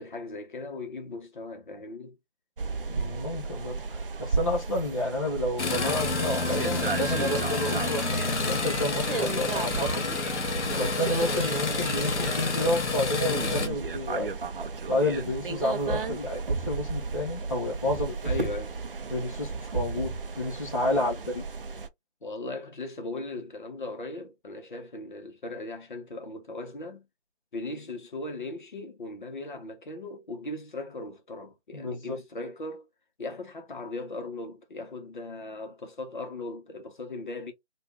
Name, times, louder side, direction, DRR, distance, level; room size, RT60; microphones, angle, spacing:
voice 1, 0.0-2.2 18.2-18.7 20.9-21.0 22.2-27.1 27.5-32.9 33.2-37.5, left 2 dB, 45° left, 0.9 m, -38 dB
sound 1, 2.6-21.9, right 4 dB, 50° right, 0.5 m, -34 dB
voice 2, 2.9-10.1 10.8-14.3 14.9-18.5 19.1-21.4 31.7-32.2, left 1 dB, 30° left, 0.5 m, -30 dB
sound 2, 5.3-5.4 5.7-10.5 11.2-12.5, right 1 dB, ahead, 1.2 m, -41 dB
sound 3, 5.6-13.7, left 3 dB, 75° left, 0.9 m, -29 dB
2.6 x 2.3 x 3.4 m
figure-of-eight pair, 160°, 34 cm